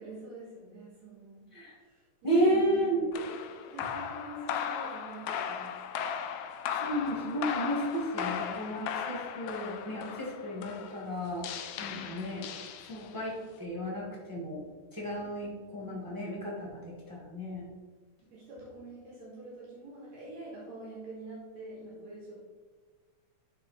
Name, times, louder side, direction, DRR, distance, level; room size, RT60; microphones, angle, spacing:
voice 1, 0.0-1.5 1.8-3.2 3.7-5.8 11.8-12.1 15.2-16.2 18.2-22.4, right 2 dB, 70° right, -5 dB, 2.6 m, -46 dB
voice 2, 2.2-3.0 6.7-11.4 11.8-12.5 12.8-14.6 14.9-17.6, equal, 25° right, -6 dB, 0.4 m, -32 dB
sound 1, 3.1-13.3, left 8 dB, 90° left, 1.3 m, -37 dB
10.5 x 3.6 x 4.1 m, 1.4 s
omnidirectional pair, 3.4 m